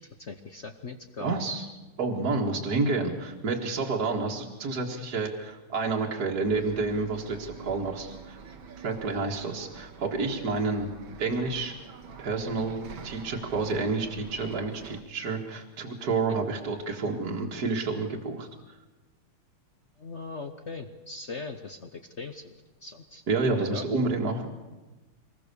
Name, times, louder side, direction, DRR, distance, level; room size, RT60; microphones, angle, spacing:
voice 1, 0.0-1.4 20.0-22.5 22.8-23.2 23.7-24.1, left 3 dB, 45° left, 7 dB, 0.9 m, -40 dB
voice 2, 1.2-1.6 2.0-8.4 8.8-10.9 11.2-11.7 12.2-18.5 23.3-24.5, right 3 dB, 50° right, -1 dB, 2.2 m, -29 dB
Bus, 6.4-15.0, right 5 dB, 70° right, 2.1 m, -46 dB
24.5 x 20.0 x 6.9 m, 1.2 s
omnidirectional pair, 2.4 m